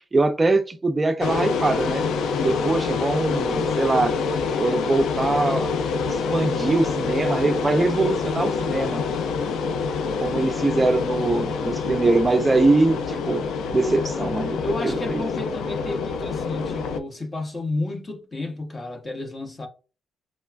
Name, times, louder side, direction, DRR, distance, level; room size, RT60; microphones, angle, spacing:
voice 1, 0.1-2.0 2.4-4.1 4.6-5.7 6.1-9.0 10.2-13.5 13.7-15.2, right 2 dB, 20° right, 0.3 m, -22 dB
sound 1, 1.2-17.0, left 5 dB, 80° left, 0.3 m, -26 dB
voice 2, 2.4-2.8 13.8-14.2 14.6-19.7, left 2 dB, 30° left, 0.7 m, -31 dB
3.1 x 2.2 x 2.3 m
cardioid pair, 90°, 0 cm